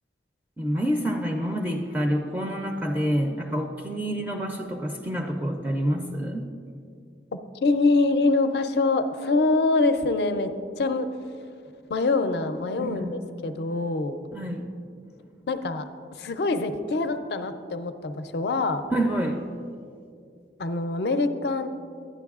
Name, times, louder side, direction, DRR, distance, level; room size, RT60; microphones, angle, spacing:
voice 1, 0.6-6.5 12.8-13.2 14.3-14.6 18.9-19.4, equal, 10° right, 1 dB, 0.4 m, -27 dB
voice 2, 7.3-10.5 10.8-11.1 11.9-13.1 13.4-14.2 15.5-15.8 16.2-18.8 20.6-21.7, left 3 dB, 65° left, 9 dB, 0.4 m, -24 dB
11.0 x 9.0 x 2.4 m, 2.4 s
head